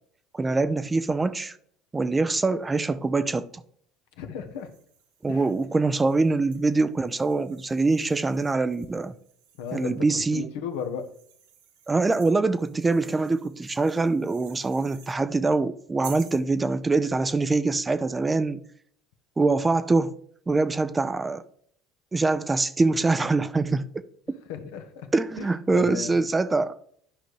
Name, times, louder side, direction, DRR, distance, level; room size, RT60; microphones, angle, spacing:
voice 1, 0.3-1.6 1.9-3.5 5.2-9.1 9.7-10.5 11.9-18.6 19.4-20.1 20.5-21.4 22.1-24.4 25.1-26.8, right 3 dB, 20° right, 0.5 m, -24 dB
voice 2, 4.2-4.7 5.3-5.4 9.6-11.0 24.5-25.1 25.4-25.5 25.7-26.2, left 7 dB, 75° left, 1.0 m, -34 dB
sound 1, 4.5-10.1 10.7-15.2 16.0-16.5, right 8 dB, 80° right, 1.0 m, -52 dB
11.5 x 5.1 x 3.2 m
hypercardioid pair, 70°, 0 cm